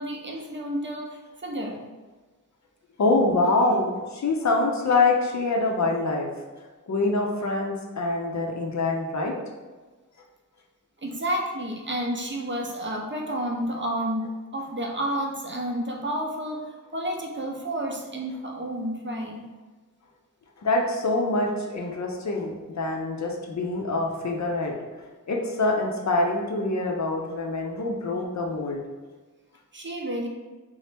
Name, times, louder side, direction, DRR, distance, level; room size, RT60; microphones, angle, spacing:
voice 1, 0.0-1.8 11.0-19.4 29.7-30.3, right 1 dB, 35° right, 0 dB, 0.6 m, -30 dB
voice 2, 3.0-6.3 6.8-9.3 20.6-24.7 25.3-28.8, left 2 dB, 55° left, 1 dB, 0.5 m, -25 dB
2.9 x 2.0 x 3.3 m, 1.3 s
cardioid pair, 55°, 34 cm